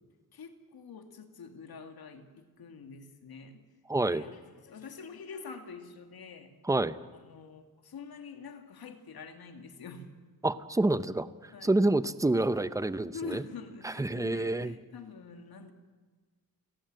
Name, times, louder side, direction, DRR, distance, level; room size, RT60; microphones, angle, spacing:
voice 1, 0.3-3.6 4.0-6.5 7.1-10.1 11.5-11.7 13.1-15.7, left 5 dB, 80° left, 6 dB, 2.4 m, -46 dB
voice 2, 3.9-4.2 6.6-7.0 10.4-13.4 13.8-14.7, right 2 dB, 10° right, 14 dB, 0.6 m, -28 dB
29.5 x 18.0 x 7.7 m, 1.4 s
wide cardioid pair, 165°, 36 cm